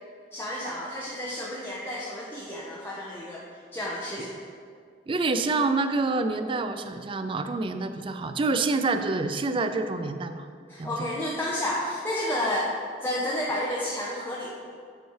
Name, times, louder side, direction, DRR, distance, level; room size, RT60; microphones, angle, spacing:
voice 1, 0.3-3.4 3.7-4.4 10.7-12.7 13.0-14.6, left 1 dB, 15° left, -5 dB, 0.6 m, -31 dB
voice 2, 5.1-10.4 10.8-11.1, right 3 dB, 30° right, 8 dB, 0.3 m, -27 dB
7.9 x 3.1 x 4.7 m, 2.2 s
head